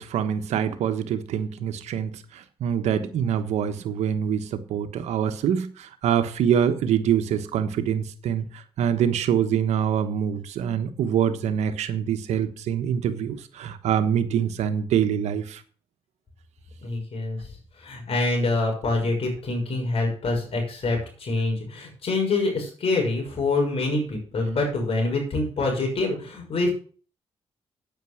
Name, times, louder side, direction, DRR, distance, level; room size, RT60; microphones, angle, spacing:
voice 1, 0.0-15.6, right 8 dB, 85° right, 10 dB, 1.3 m, -25 dB
voice 2, 16.8-17.4 17.8-26.7, left 2 dB, 60° left, 1 dB, 6.3 m, -25 dB
9.2 x 8.9 x 6.5 m, 0.42 s
cardioid pair, 75°, 11 cm